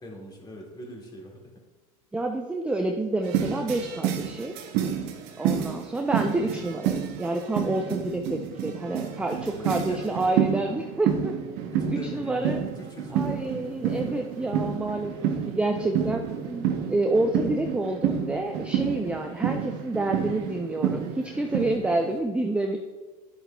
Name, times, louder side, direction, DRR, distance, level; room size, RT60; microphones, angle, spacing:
voice 1, 0.0-1.5 9.5-10.4 11.7-14.2 15.1-15.4, left 1 dB, 20° left, -1 dB, 2.1 m, -42 dB
voice 2, 2.1-4.6 5.4-11.3 11.9-12.6 13.1-22.8, right 2 dB, 5° right, 3 dB, 0.5 m, -28 dB
sound 1, 3.2-22.2, right 9 dB, 60° right, 0.9 m, -29 dB
10.0 x 7.6 x 2.3 m, 1.2 s
hypercardioid pair, 105°, 19 cm